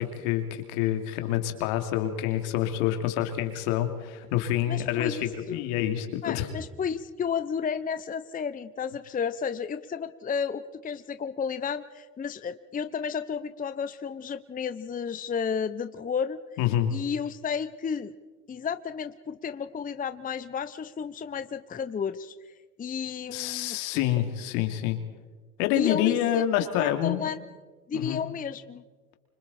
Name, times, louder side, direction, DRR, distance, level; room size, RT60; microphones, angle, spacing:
voice 1, 0.0-6.5 16.6-16.9 23.3-25.0 25.6-27.3 27.9-28.2, left 12 dB, 70° left, 6 dB, 2.7 m, -27 dB
voice 2, 4.7-5.7 6.2-16.4 16.9-18.1 18.5-22.3 22.8-24.1 25.7-26.4 26.7-27.4 27.9-28.8, left 6 dB, 20° left, 12 dB, 0.8 m, -32 dB
25.5 x 25.5 x 4.3 m, 1.3 s
hypercardioid pair, 80°, 45 cm